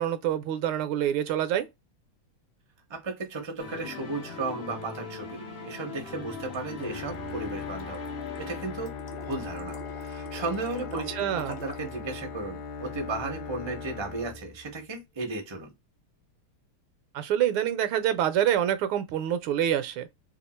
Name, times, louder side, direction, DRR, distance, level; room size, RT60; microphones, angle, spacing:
voice 1, 0.0-1.7 11.2-11.6 17.1-20.1, right 10 dB, 80° right, 1.4 m, -26 dB
voice 2, 2.9-8.0 8.4-8.9 9.2-15.7, right 3 dB, 40° right, 0.3 m, -35 dB
sound 1, 3.6-9.8, left 4 dB, 85° left, 0.5 m, -41 dB
sound 2, 6.0-12.0, left 2 dB, 45° left, 0.7 m, -47 dB
Bowed string instrument, 6.8-15.0, left 5 dB, 70° left, 1.3 m, -39 dB
3.5 x 2.4 x 4.2 m
omnidirectional pair, 2.4 m